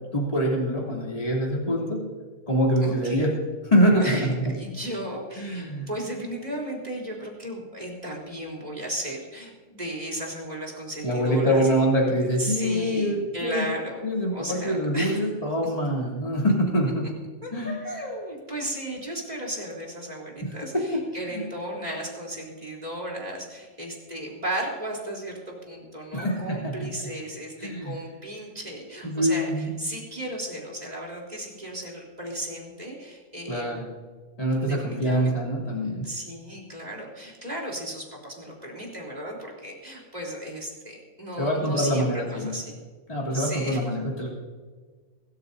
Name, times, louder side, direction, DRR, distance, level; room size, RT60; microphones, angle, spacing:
voice 1, 0.1-2.0 2.5-3.3 3.6-4.3 5.4-5.9 11.0-13.6 14.0-17.1 17.5-17.8 20.4-20.5 20.9-21.0 21.3-21.4 26.1-26.7 27.6-27.9 29.0-29.7 33.5-33.8 34.4-36.1 41.4-42.5 43.1-44.3, equal, 25° left, -4 dB, 3.2 m, -24 dB
voice 2, 2.8-3.4 4.0-11.7 12.4-14.0 14.3-15.2 15.6-15.7 17.4-33.8 34.6-35.4 36.0-42.8 43.3-44.0, right 1 dB, 25° right, -2 dB, 3.8 m, -35 dB
23.5 x 13.5 x 2.7 m, 1.5 s
omnidirectional pair, 1.5 m